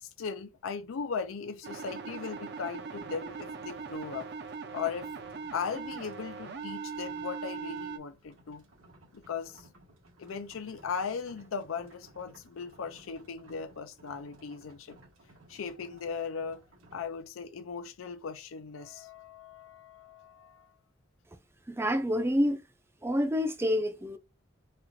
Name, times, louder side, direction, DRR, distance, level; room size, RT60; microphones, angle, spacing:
voice 1, 0.0-4.3 4.7-5.1 5.5-8.6 9.1-9.7 10.2-15.0 15.5-16.6 16.9-20.7, left 6 dB, 85° left, 0.4 m, -38 dB
sound 1, 1.6-8.0, right 5 dB, 55° right, 0.6 m, -40 dB
sound 2, 2.9-17.2, right 1 dB, 85° right, 1.5 m, -58 dB
voice 2, 21.7-22.6 23.0-24.2, equal, 10° right, 0.4 m, -27 dB
4.2 x 2.4 x 2.6 m
head